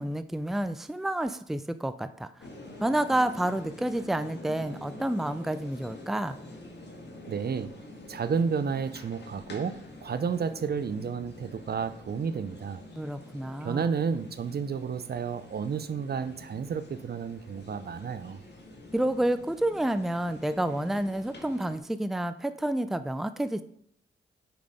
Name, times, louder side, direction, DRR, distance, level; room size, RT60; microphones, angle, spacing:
voice 1, 0.0-2.5 2.8-6.4 13.0-14.0 18.9-23.6, right 1 dB, ahead, 11 dB, 0.5 m, -29 dB
sound 1, 2.4-21.8, left 1 dB, 55° left, 1.8 m, -47 dB
voice 2, 7.3-7.7 8.1-12.8 13.6-18.4, right 6 dB, 50° right, 12 dB, 0.6 m, -31 dB
5.9 x 5.2 x 5.0 m, 0.69 s
supercardioid pair, 45°, 21 cm